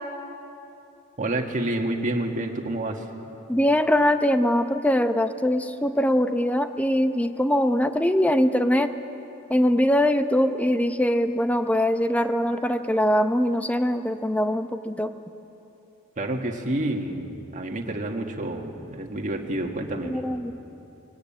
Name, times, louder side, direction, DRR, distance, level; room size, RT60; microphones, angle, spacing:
voice 1, 1.2-3.1 16.2-20.2, right 1 dB, 35° right, 2 dB, 1.6 m, -29 dB
voice 2, 3.5-8.9 9.5-15.1 20.0-20.5, equal, 5° left, 9 dB, 0.7 m, -22 dB
19.5 x 17.5 x 8.7 m, 2.9 s
head